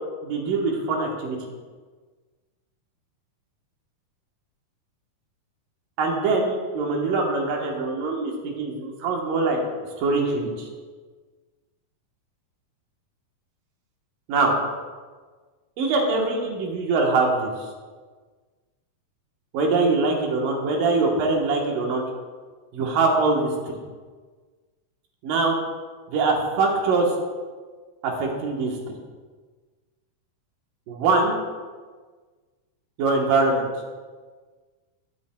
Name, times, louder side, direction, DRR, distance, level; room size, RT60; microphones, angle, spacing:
voice 1, 0.2-1.4 6.0-9.6 10.0-10.7 14.3-14.5 15.8-17.5 19.5-22.0 22.7-23.8 25.2-25.6 26.1-27.1 28.0-28.8 30.9-31.4 33.0-33.7, right 3 dB, 90° right, 0 dB, 2.8 m, -23 dB
16.5 x 8.6 x 2.2 m, 1.4 s
omnidirectional pair, 3.7 m